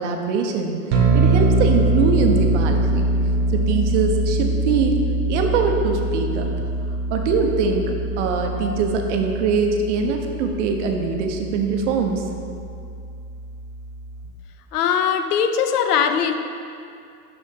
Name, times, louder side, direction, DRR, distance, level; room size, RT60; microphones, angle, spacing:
voice 1, 0.0-3.1 3.5-5.0 5.3-6.7 7.1-12.2, right 5 dB, 50° right, 3 dB, 1.0 m, -23 dB
sound 1, 0.9-14.3, right 2 dB, 20° right, 0.3 m, -23 dB
voice 2, 14.7-16.3, left 7 dB, 70° left, 8 dB, 0.7 m, -20 dB
6.7 x 6.2 x 5.4 m, 2.5 s
supercardioid pair, 150°, 48 cm